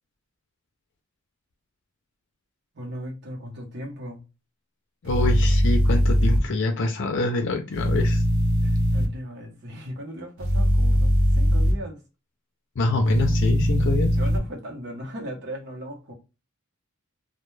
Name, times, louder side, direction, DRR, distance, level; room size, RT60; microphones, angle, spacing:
voice 1, 2.7-4.2 8.6-12.0 14.2-16.1, equal, 55° right, 0.8 m, -37 dB
voice 2, 5.0-8.2 12.8-14.2, left 2 dB, 60° left, 0.5 m, -25 dB
sound 1, 5.0-6.4 7.7-9.1 10.4-11.7 13.1-14.4, equal, 90° right, 0.6 m, -20 dB
2.2 x 2.1 x 3.1 m
head